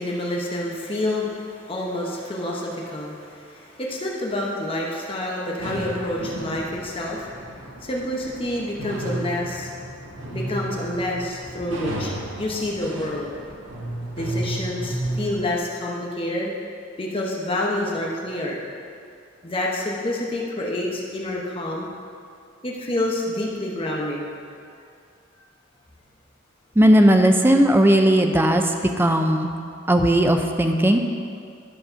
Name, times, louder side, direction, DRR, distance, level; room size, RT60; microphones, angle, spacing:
voice 1, 0.0-7.4 7.8-9.7 10.3-12.1 12.4-13.3 14.2-16.5 17.0-18.6 19.4-21.9 22.6-24.3, left 1 dB, 30° left, -3 dB, 0.9 m, -28 dB
sound 1, 5.6-15.6, right 1 dB, 85° right, 1.1 m, -33 dB
voice 2, 26.8-29.5 29.9-31.0, right 1 dB, 10° right, 5 dB, 0.5 m, -17 dB
12.0 x 4.2 x 5.6 m, 2.4 s
head